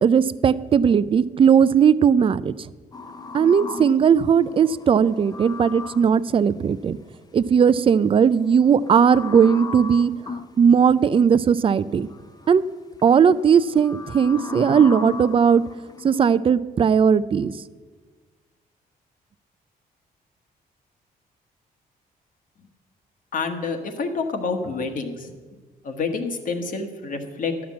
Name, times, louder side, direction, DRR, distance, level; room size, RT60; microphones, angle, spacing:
voice 1, 0.0-2.5 3.3-7.0 7.3-10.1 10.6-12.1 12.5-12.6 13.0-15.6 16.0-17.5, right 7 dB, 35° right, 17 dB, 0.4 m, -18 dB
sound 1, 2.9-6.2 8.3-10.6 11.9-12.5 13.0-16.4, left 4 dB, 25° left, 0.7 m, -36 dB
voice 2, 23.3-25.3 25.8-27.7, left 4 dB, 60° left, 6 dB, 1.3 m, -28 dB
12.0 x 5.9 x 8.4 m, 1.4 s
cardioid pair, 115°, 16 cm